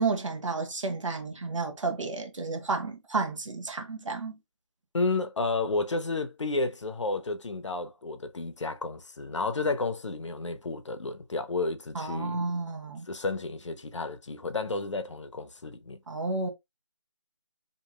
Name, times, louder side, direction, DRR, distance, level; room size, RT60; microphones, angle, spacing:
voice 1, 0.0-4.4 11.9-13.1 16.1-16.5, right 4 dB, 75° right, 1.0 m, -31 dB
voice 2, 4.9-12.4 13.1-16.0, left 3 dB, 70° left, 0.6 m, -31 dB
2.9 x 2.6 x 2.3 m
figure-of-eight pair, 165°, 16 cm